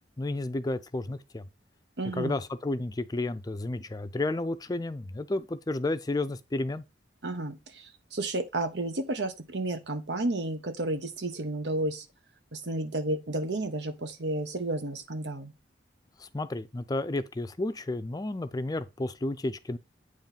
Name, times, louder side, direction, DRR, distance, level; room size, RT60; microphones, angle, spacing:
voice 1, 0.2-1.4 2.1-6.8 16.2-19.8, left 2 dB, 20° left, 0.4 m, -32 dB
voice 2, 2.0-2.4 7.2-12.0 12.5-15.5, right 2 dB, 80° right, 1.2 m, -32 dB
8.9 x 3.2 x 5.7 m
head